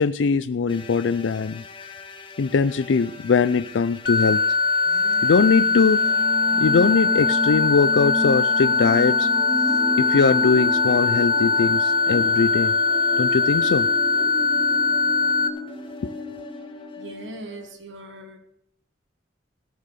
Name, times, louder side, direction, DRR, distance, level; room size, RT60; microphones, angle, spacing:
voice 1, 0.0-1.6 2.4-4.6 5.2-6.0 6.6-9.3 10.0-12.7 13.2-13.9 16.0-16.1, left 5 dB, 75° left, 13 dB, 0.4 m, -21 dB
sound 1, 0.7-17.8, left 4 dB, 25° left, 1.3 m, -42 dB
sound 2, 4.1-15.5, left 4 dB, 50° left, 1.1 m, -21 dB
sound 3, 4.9-17.3, left 1 dB, 5° left, 3.2 m, -32 dB
voice 2, 17.0-18.4, right 1 dB, 75° right, 6 dB, 1.8 m, -39 dB
17.0 x 6.6 x 6.5 m, 0.75 s
head